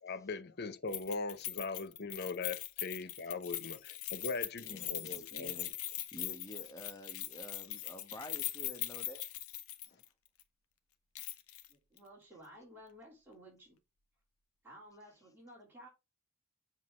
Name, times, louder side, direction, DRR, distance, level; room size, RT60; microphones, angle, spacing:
voice 1, 0.0-5.5, left 4 dB, 50° left, 0.8 m, -40 dB
Keys jangling, 0.9-10.1 10.4-10.5 11.1-11.7 12.0-12.1, left 14 dB, 90° left, 0.9 m, -41 dB
voice 2, 4.6-9.3 9.9-10.0, left 1 dB, 15° left, 1.2 m, -49 dB
voice 3, 11.7-13.8 14.6-15.9, equal, 10° right, 3.0 m, -55 dB
7.4 x 4.0 x 5.0 m
head